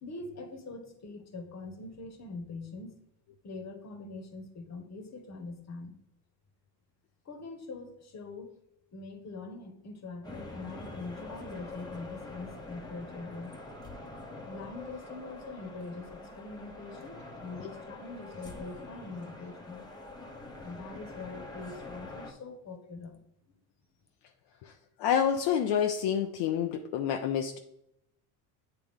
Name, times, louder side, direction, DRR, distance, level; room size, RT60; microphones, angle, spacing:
voice 1, 0.0-3.0 3.4-6.0 7.2-8.5 8.9-13.6 14.5-19.9 20.6-23.2, left 3 dB, 35° left, 6 dB, 1.3 m, -43 dB
sound 1, 10.2-22.3, left 2 dB, 10° left, 1.1 m, -45 dB
voice 2, 25.0-27.6, left 8 dB, 65° left, 4 dB, 0.7 m, -28 dB
8.8 x 3.3 x 3.6 m, 0.79 s
supercardioid pair, 80°, 44 cm